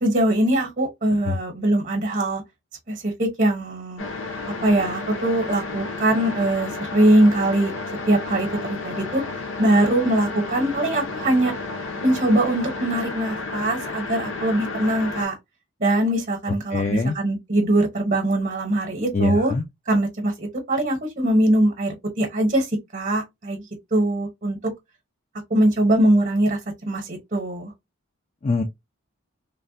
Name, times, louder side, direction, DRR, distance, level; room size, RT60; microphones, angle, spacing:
voice 1, 0.0-2.4 2.9-4.0 4.6-7.7 8.1-9.2 9.6-11.5 12.0-15.3 15.8-19.5 19.9-23.6 23.9-24.6 25.5-26.6 26.9-27.7, right 1 dB, 40° right, 0.8 m, -21 dB
sound 1, 4.0-15.3, left 3 dB, 70° left, 0.7 m, -32 dB
voice 2, 16.7-17.1 19.1-19.6 28.4-28.6, left 4 dB, 30° left, 0.3 m, -23 dB
3.2 x 2.1 x 2.6 m
head